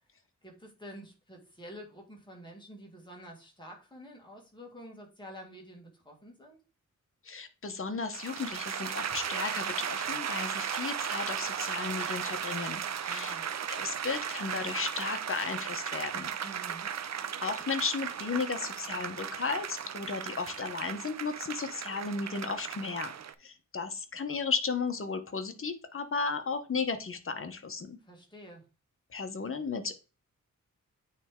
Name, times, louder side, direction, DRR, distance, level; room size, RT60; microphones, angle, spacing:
voice 1, 0.4-6.6 13.0-13.5 16.4-16.9 28.0-28.7, equal, 15° left, 1.9 m, -48 dB
voice 2, 7.2-13.4 13.7-16.3 17.4-23.1 23.4-28.0 29.1-30.0, left 4 dB, 40° left, 0.9 m, -34 dB
sound 1, 8.1-23.3, right 8 dB, 60° right, 0.5 m, -36 dB
9.0 x 3.3 x 3.7 m
wide cardioid pair, 140°, 31 cm